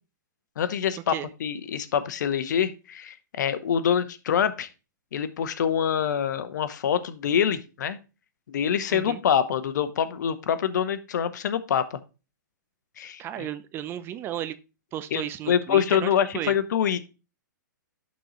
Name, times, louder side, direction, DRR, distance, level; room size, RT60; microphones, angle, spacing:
voice 1, 0.6-4.7 5.1-8.0 8.5-12.0 13.0-13.5 15.1-17.1, left 8 dB, 65° left, 13 dB, 0.9 m, -25 dB
voice 2, 8.9-9.2 13.2-14.5 14.9-16.5, right 11 dB, 20° right, 13 dB, 0.4 m, -34 dB
11.0 x 4.1 x 3.0 m, 0.31 s
hypercardioid pair, 135°, 11 cm